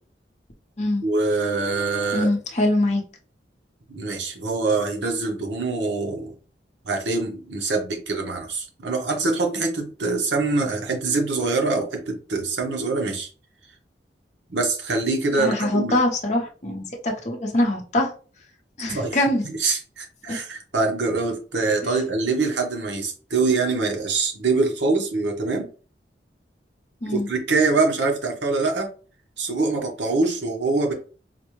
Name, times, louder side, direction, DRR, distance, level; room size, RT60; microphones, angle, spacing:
voice 1, 1.0-2.3 3.9-6.3 6.9-13.3 14.5-15.9 18.9-19.2 19.6-25.7 27.0-28.9 29.4-30.9, right 3 dB, 90° right, 2 dB, 0.9 m, -24 dB
voice 2, 2.1-3.0 15.4-18.1 18.8-19.5 20.3-20.4 21.8-22.0 27.0-27.3, left 1 dB, 40° left, 1 dB, 0.7 m, -23 dB
4.2 x 2.1 x 3.0 m, 0.38 s
head